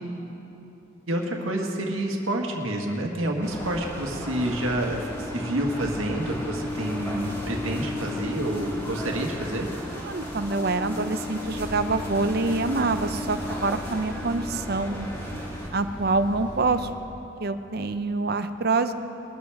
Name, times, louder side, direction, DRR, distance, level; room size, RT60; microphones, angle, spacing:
voice 1, 1.1-9.7, right 1 dB, 80° right, 1 dB, 1.8 m, -28 dB
sound 1, 3.4-15.7, left 1 dB, 15° left, 2.2 m, -34 dB
voice 2, 10.0-15.1 15.7-16.9 17.4-18.9, right 3 dB, 50° right, 10 dB, 0.6 m, -26 dB
sound 2, 11.4-16.9, equal, 35° left, 1.9 m, -40 dB
21.5 x 13.0 x 3.5 m, 3.0 s
head